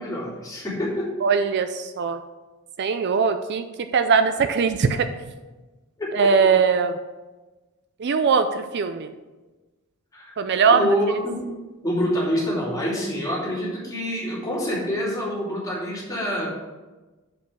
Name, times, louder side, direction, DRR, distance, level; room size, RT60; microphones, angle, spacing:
voice 1, 0.0-1.1 6.0-6.3 10.1-10.3 10.7-11.6 11.8-16.5, equal, 15° left, -6 dB, 2.7 m, -26 dB
voice 2, 1.2-2.2 2.8-3.7 3.9-5.1 6.1-7.0 8.0-9.1 10.4-10.9, right 5 dB, 50° right, 9 dB, 0.4 m, -20 dB
7.0 x 5.2 x 6.1 m, 1.2 s
head